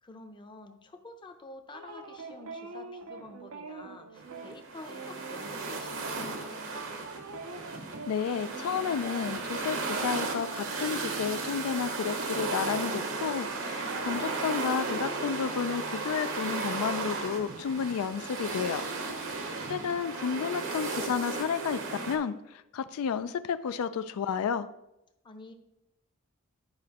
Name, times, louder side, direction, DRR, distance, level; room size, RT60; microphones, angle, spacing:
voice 1, 0.0-6.9 19.3-19.9 25.2-25.5, left 2 dB, 20° left, 6 dB, 0.6 m, -49 dB
sound 1, 1.7-11.9 12.2-14.9, right 4 dB, 85° right, 0.6 m, -46 dB
sound 2, 4.2-22.2, right 3 dB, 65° right, 1.0 m, -35 dB
voice 2, 8.1-18.8 19.2-19.3 19.7-24.7, left 7 dB, 85° left, 12 dB, 0.3 m, -32 dB
10.5 x 4.9 x 2.9 m, 0.91 s
head